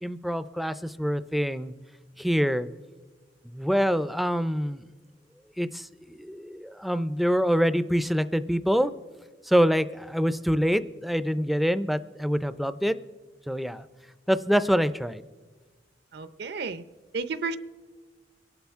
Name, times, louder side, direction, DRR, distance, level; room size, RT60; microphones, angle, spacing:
voice 1, 0.0-1.7 2.2-2.7 3.4-4.8 5.6-8.9 9.4-13.0 13.5-13.8 14.3-15.2, equal, ahead, 13 dB, 0.4 m, -25 dB
voice 2, 16.1-16.8 17.1-17.6, right 4 dB, 65° right, 13 dB, 0.6 m, -32 dB
23.5 x 11.5 x 3.5 m, 1.4 s
head